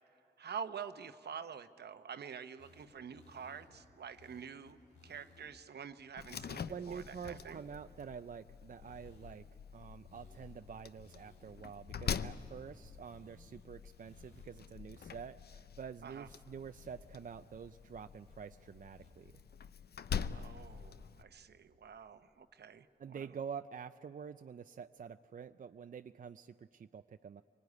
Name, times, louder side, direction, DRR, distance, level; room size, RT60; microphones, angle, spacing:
voice 1, 0.4-4.8 5.0-7.6 16.0-16.3 20.3-23.3, right 7 dB, 70° right, 10 dB, 0.9 m, -47 dB
sound 1, 2.6-5.6 6.0-6.1 6.3-8.0 8.7-9.6 9.9-12.8 13.1-13.6 14.0-14.8 15.0-15.1 15.4-15.8 16.2-16.3 16.7-17.9 18.3-19.4 19.8-20.6, left 3 dB, 85° left, 4.0 m, -64 dB
Slam, 6.2-21.2, left 7 dB, 65° left, 0.6 m, -45 dB
voice 2, 6.7-9.5 9.7-19.3 23.0-27.4, right 7 dB, 50° right, 9 dB, 0.5 m, -47 dB
25.0 x 19.5 x 9.6 m, 2.7 s
cardioid pair, 60°, 18 cm